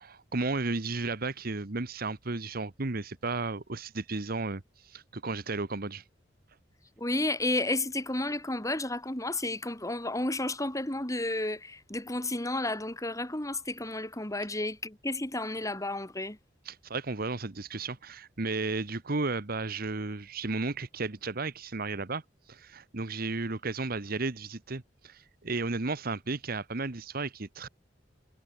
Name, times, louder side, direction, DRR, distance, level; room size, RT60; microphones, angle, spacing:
voice 1, 0.0-6.0 16.6-22.2 22.5-27.7, right 3 dB, 55° right, 1.3 m, -34 dB
voice 2, 7.0-16.4, left 2 dB, 20° left, 3.6 m, -32 dB
head